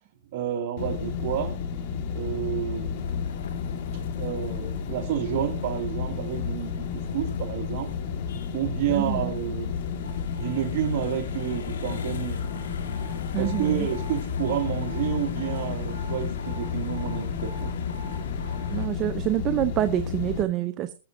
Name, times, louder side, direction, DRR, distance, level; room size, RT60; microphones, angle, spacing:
voice 1, 0.3-1.6 2.1-3.1 4.1-6.9 7.1-7.9 8.5-9.8 10.4-12.4 13.4-17.8, right 11 dB, 45° right, 4 dB, 2.3 m, -30 dB
sound 1, 0.8-20.4, left 6 dB, 45° left, 1.6 m, -32 dB
sound 2, 3.0-18.9, left 4 dB, 80° left, 1.9 m, -41 dB
voice 2, 8.9-9.3 13.3-13.9 18.7-20.9, right 13 dB, 30° right, 10 dB, 0.6 m, -27 dB
21.5 x 7.3 x 2.6 m, 0.33 s
hypercardioid pair, 145°, 0 cm